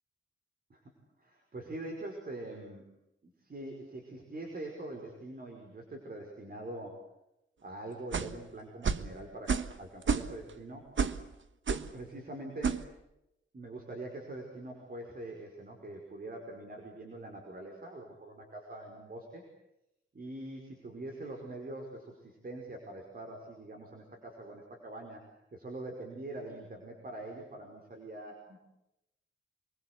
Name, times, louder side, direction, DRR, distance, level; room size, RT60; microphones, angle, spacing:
voice 1, 1.2-2.9 3.2-7.0 7.6-10.9 11.9-12.9 13.5-19.4 20.1-25.2 25.5-28.6, right 2 dB, 45° right, 1 dB, 5.4 m, -44 dB
sound 1, 8.1-8.4 8.8-9.1 9.5-9.8 10.0-10.5 11.0-11.2 11.7-11.9 12.6-12.8, right 6 dB, 65° right, 1.4 m, -30 dB
28.5 x 23.0 x 8.3 m, 0.87 s
wide cardioid pair, 155°, 21 cm